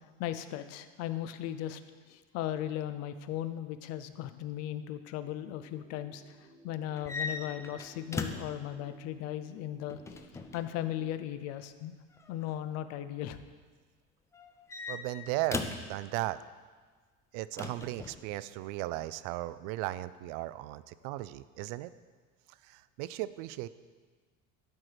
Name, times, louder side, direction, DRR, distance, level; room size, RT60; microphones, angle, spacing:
voice 1, 0.0-1.8 2.1-6.2 6.6-10.0 10.5-11.9 12.3-13.4, left 11 dB, 55° left, 11 dB, 0.6 m, -37 dB
sound 1, 5.3-11.3, right 3 dB, 10° right, 1.2 m, -58 dB
sound 2, 7.0-8.6 9.9-10.7 12.1-12.5 14.3-15.9 17.6-18.2, left 3 dB, 10° left, 0.3 m, -38 dB
voice 2, 14.9-16.4 17.3-21.9 22.6-23.7, right 16 dB, 75° right, 16 dB, 0.4 m, -36 dB
12.0 x 4.6 x 4.9 m, 1.5 s
cardioid pair, 150°, 30 cm